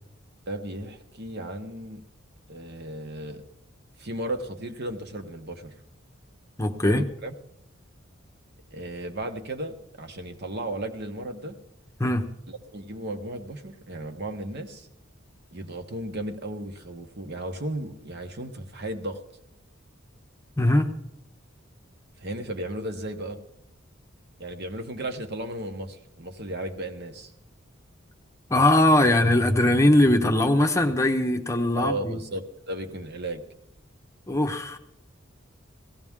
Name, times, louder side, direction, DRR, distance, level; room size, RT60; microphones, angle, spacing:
voice 1, 0.5-2.0 2.5-3.4 4.0-5.7 6.8-7.3 8.7-11.6 12.5-14.9 15.5-19.2 22.2-23.4 24.4-27.3 31.8-33.4, right 1 dB, 55° right, 5 dB, 1.2 m, -35 dB
voice 2, 6.6-7.0 12.0-12.3 20.6-20.9 28.5-32.2 34.3-34.8, left 1 dB, 15° left, 5 dB, 0.8 m, -21 dB
17.5 x 15.0 x 3.7 m, 0.81 s
head